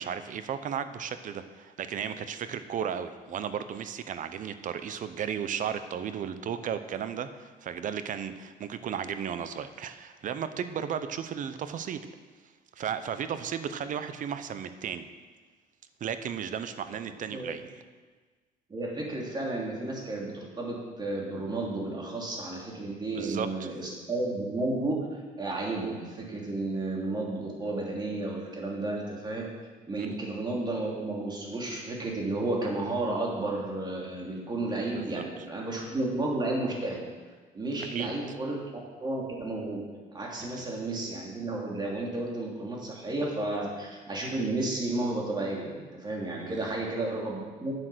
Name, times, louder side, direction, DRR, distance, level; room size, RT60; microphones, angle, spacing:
voice 1, 0.0-12.0 12.8-15.1 16.0-17.8 23.1-23.7 30.0-30.1 34.9-35.2 37.9-38.1 40.6-40.7 46.4-46.8, right 8 dB, 50° right, 11 dB, 0.7 m, -34 dB
voice 2, 18.7-29.5 29.9-37.0 37.5-38.6 39.0-39.8 40.1-47.7, right 2 dB, 25° right, -2 dB, 2.9 m, -32 dB
9.0 x 7.7 x 6.3 m, 1.4 s
cardioid pair, 110°, 17 cm